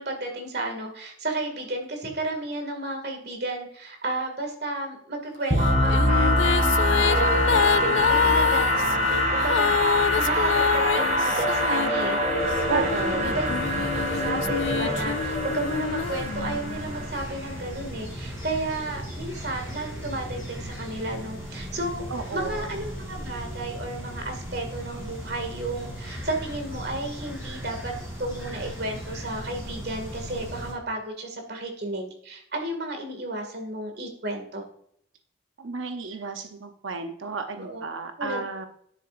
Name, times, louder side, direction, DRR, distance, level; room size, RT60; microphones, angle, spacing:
voice 1, 0.0-12.2 12.7-13.5 14.1-22.0 22.3-27.9 28.2-34.6 37.6-37.8 38.2-38.4, right 2 dB, 55° right, 4 dB, 2.1 m, -32 dB
sound 1, 5.5-17.3, left 1 dB, 35° right, 2.4 m, -24 dB
sound 2, 5.6-12.6 13.2-16.9, left 7 dB, 70° left, 0.3 m, -27 dB
sound 3, 12.4-30.7, equal, 15° right, 3.3 m, -37 dB
voice 2, 12.7-13.4 22.1-22.7 35.6-38.7, right 4 dB, 80° right, 6 dB, 0.8 m, -32 dB
10.0 x 7.7 x 2.5 m, 0.66 s
head